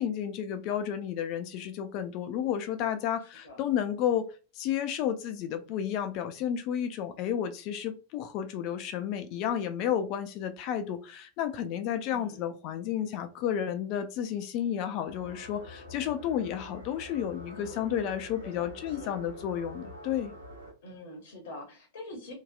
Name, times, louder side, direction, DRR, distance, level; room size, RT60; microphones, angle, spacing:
voice 1, 0.0-4.3 4.6-20.3, left 9 dB, 40° left, 9 dB, 0.3 m, -32 dB
voice 2, 3.2-3.6 12.1-12.5 17.6-18.0 18.4-19.2 20.8-22.3, left 1 dB, 60° left, 2 dB, 0.7 m, -46 dB
sound 1, 15.1-20.7, left 1 dB, 85° right, 0.9 m, -46 dB
2.7 x 2.2 x 2.2 m, 0.35 s
figure-of-eight pair, 90°, 0 cm